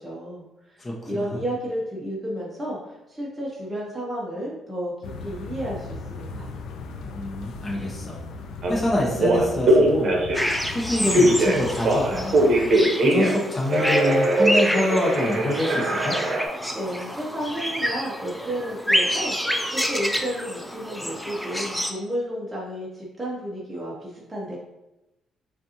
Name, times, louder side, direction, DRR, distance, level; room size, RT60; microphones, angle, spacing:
voice 1, 0.0-4.9 5.2-6.5 16.7-24.6, equal, 15° right, -5 dB, 0.9 m, -32 dB
voice 2, 0.8-1.4 7.1-8.2 8.7-10.1 10.7-12.4 13.0-16.2, left 1 dB, 25° left, -2 dB, 1.0 m, -26 dB
sound 1, 5.0-12.8, left 4 dB, 85° left, 0.4 m, -38 dB
Telephone, 8.6-8.7 9.1-10.5 11.1-13.4 13.7-16.5, right 1 dB, 50° right, 0.9 m, -21 dB
sound 2, 10.3-21.9, equal, 5° left, 0.5 m, -28 dB
5.2 x 2.6 x 2.9 m, 0.95 s
cardioid pair, 90°, 0 cm